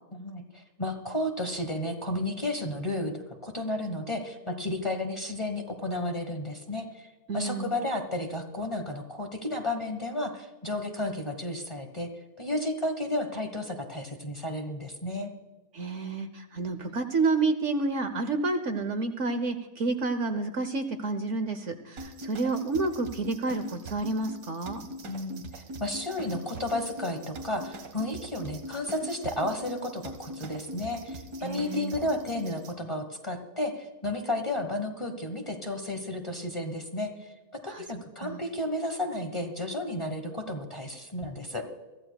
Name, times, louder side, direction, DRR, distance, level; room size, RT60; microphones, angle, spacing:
voice 1, 0.1-7.1 7.3-12.1 12.4-15.3 25.1-41.6, left 1 dB, 20° left, 4 dB, 1.2 m, -32 dB
voice 2, 7.3-7.7 15.7-24.8 31.4-31.9 37.6-38.4, right 3 dB, 55° right, 8 dB, 1.1 m, -30 dB
sound 1, 22.0-32.7, right 1 dB, 85° right, 2.1 m, -42 dB
23.5 x 14.5 x 2.3 m, 1.2 s
omnidirectional pair, 1.7 m